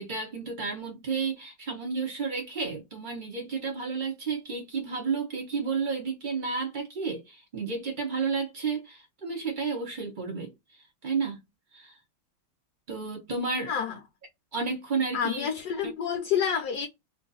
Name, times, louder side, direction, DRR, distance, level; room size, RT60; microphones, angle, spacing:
voice 1, 0.0-10.5 11.0-11.4 11.7-11.9 12.9-13.7 14.5-15.5, right 5 dB, 60° right, 0.5 m, -31 dB
voice 2, 15.1-16.9, left 8 dB, 70° left, 1.0 m, -28 dB
3.1 x 2.6 x 3.9 m
omnidirectional pair, 2.2 m